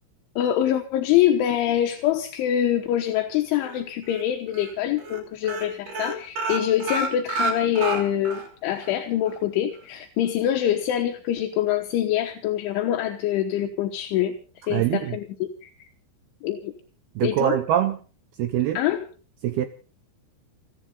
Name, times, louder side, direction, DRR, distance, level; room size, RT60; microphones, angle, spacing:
voice 1, 0.4-14.3 14.7-15.3 15.6-15.7 16.4-16.7 17.2-17.6 18.7-19.1, left 11 dB, 75° left, 5 dB, 3.5 m, -24 dB
sound 1, 3.6-4.2 4.5-4.7 5.0-5.2 5.4-8.5 8.8-8.9 9.3-9.4, right 3 dB, 45° right, 4.3 m, -29 dB
voice 2, 14.7-15.2 17.2-18.0 18.4-18.8 19.4-19.7, right 11 dB, 80° right, 10 dB, 2.2 m, -23 dB
30.0 x 11.0 x 3.9 m, 0.37 s
omnidirectional pair, 5.7 m